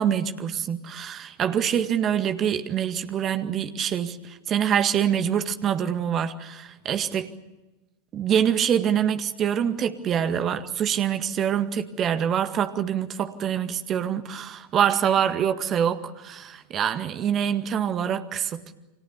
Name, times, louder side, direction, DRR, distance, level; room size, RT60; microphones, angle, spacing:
voice 1, 0.0-7.3 8.1-18.7, right 9 dB, 30° right, 9 dB, 1.9 m, -25 dB
29.5 x 25.5 x 7.0 m, 1.1 s
figure-of-eight pair, 90°, 0 cm